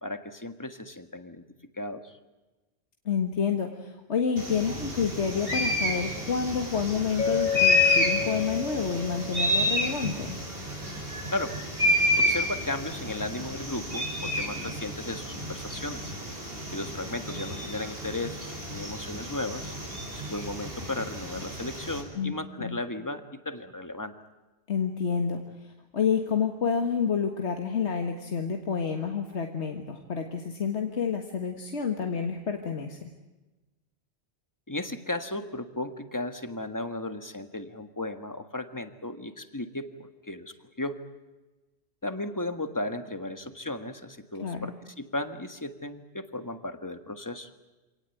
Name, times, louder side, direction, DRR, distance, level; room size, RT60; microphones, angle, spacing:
voice 1, 0.0-1.4 1.8-2.2 11.3-11.6 12.1-16.1 16.7-19.7 20.1-24.1 34.7-41.0 42.0-47.5, left 2 dB, 15° left, 8 dB, 1.6 m, -35 dB
voice 2, 3.1-10.4 22.2-22.8 24.7-33.0 44.4-44.7, left 6 dB, 85° left, 4 dB, 1.9 m, -29 dB
sound 1, 4.4-22.0, left 1 dB, 55° right, 5.3 m, -30 dB
Mallet percussion, 7.2-10.2, left 7 dB, 45° left, 1.0 m, -32 dB
27.0 x 18.5 x 9.2 m, 1.1 s
omnidirectional pair, 1.1 m